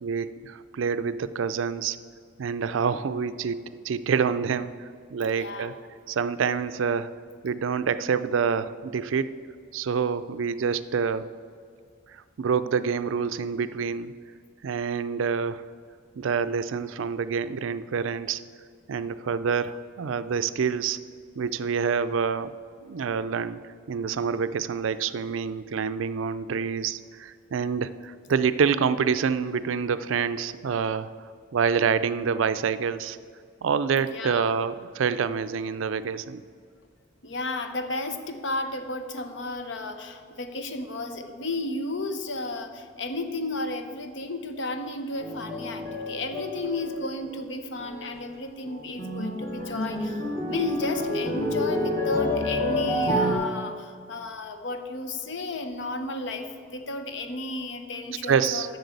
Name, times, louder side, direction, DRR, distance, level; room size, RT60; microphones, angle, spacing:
voice 1, 0.0-2.0 2.4-5.7 6.1-7.1 7.4-9.3 9.7-11.2 12.1-14.1 14.6-15.6 16.2-18.4 18.9-21.0 21.4-22.5 22.8-33.2 33.6-36.4 58.2-58.7, right 6 dB, 70° right, 14 dB, 0.4 m, -27 dB
voice 2, 5.2-5.7 34.0-34.5 37.2-58.8, left 2 dB, 60° left, 8 dB, 0.8 m, -33 dB
sound 1, 45.2-47.5 47.8-48.3 48.7-53.3, left 1 dB, 15° left, 1.2 m, -29 dB
7.9 x 6.8 x 8.2 m, 2.1 s
head